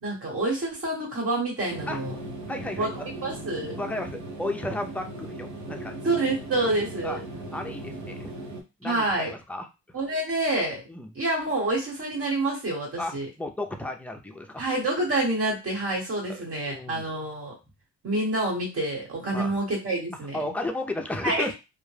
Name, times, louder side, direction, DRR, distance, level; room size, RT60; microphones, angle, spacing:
voice 1, 0.0-2.1 2.8-3.8 6.0-7.2 8.8-9.3 9.9-10.8 11.1-13.3 14.6-17.5 18.0-20.4 21.2-21.5, right 2 dB, 50° right, -2 dB, 1.2 m, -27 dB
sound 1, 1.7-8.6, right 2 dB, 80° right, 0.7 m, -38 dB
voice 2, 2.5-3.1 3.8-6.0 7.0-7.2 7.5-8.3 8.8-9.7 10.9-11.1 13.0-14.6 16.3-16.4 16.7-17.1 19.3-19.6 20.3-21.5, left 1 dB, 5° left, 4 dB, 0.4 m, -33 dB
2.2 x 2.0 x 3.2 m, 0.26 s
cardioid pair, 90°, 30 cm